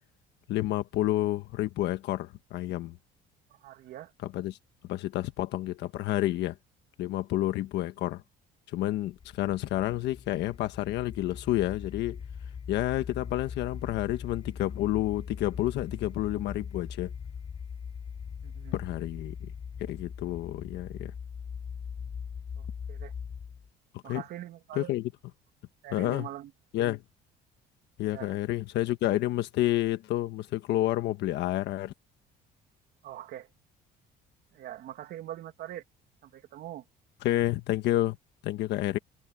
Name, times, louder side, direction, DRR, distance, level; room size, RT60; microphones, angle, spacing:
voice 1, 0.5-3.0 4.2-4.6 4.9-6.5 7.0-8.2 8.7-12.2 12.7-17.1 18.7-19.5 19.8-21.1 24.0-24.2 24.7-25.0 25.9-26.3 26.7-27.0 28.0-31.9 37.2-38.1 38.4-39.0, left 15 dB, 75° left, 1.4 m, -29 dB
voice 2, 3.5-4.1 18.4-18.8 22.6-23.1 24.0-24.9 25.8-26.5 28.1-28.4 33.0-33.5 34.5-35.8 36.2-36.8, right 12 dB, 65° right, 2.5 m, -43 dB
sound 1, 9.1-23.7, left 6 dB, 30° left, 4.4 m, -41 dB
cardioid pair, 145°, 18 cm